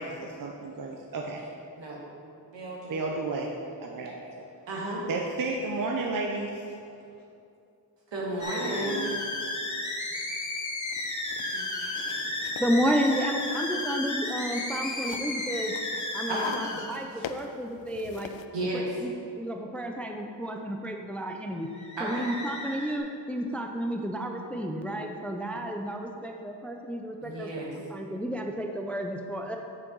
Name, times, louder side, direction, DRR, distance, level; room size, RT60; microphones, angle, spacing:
voice 1, 0.0-1.5 2.9-3.5 3.8-4.4 5.1-6.7 8.4-9.2, right 3 dB, 50° right, 0 dB, 0.7 m, -33 dB
voice 2, 2.5-3.0 4.7-5.1 8.1-9.0 11.5-12.3 16.3-16.8 17.1-17.3 18.5-18.9 22.0-22.3 27.2-27.7, right 1 dB, 75° right, -4 dB, 1.8 m, -34 dB
sound 1, 8.4-17.0 21.7-23.0, left 2 dB, 40° left, 1.1 m, -33 dB
sound 2, 10.7-18.5, left 7 dB, 80° left, 0.5 m, -44 dB
voice 3, 12.6-15.8 16.1-18.3 18.7-21.7 22.0-29.6, equal, 5° left, 3 dB, 0.4 m, -31 dB
7.7 x 6.0 x 3.9 m, 2.6 s
cardioid pair, 90°, 44 cm